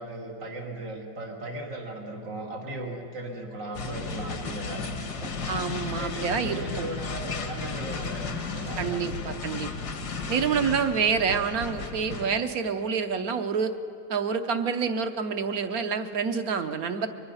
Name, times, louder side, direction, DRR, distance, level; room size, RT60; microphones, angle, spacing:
voice 1, 0.0-5.4 5.9-9.1 10.0-10.3, right 1 dB, 85° right, 0 dB, 3.0 m, -37 dB
sound 1, 3.7-12.4, left 4 dB, 70° left, 1.8 m, -34 dB
voice 2, 5.5-6.9 8.8-9.7 10.3-13.7 14.1-17.1, right 6 dB, 60° right, 8 dB, 1.3 m, -27 dB
24.0 x 22.0 x 5.6 m, 2.7 s
omnidirectional pair, 1.9 m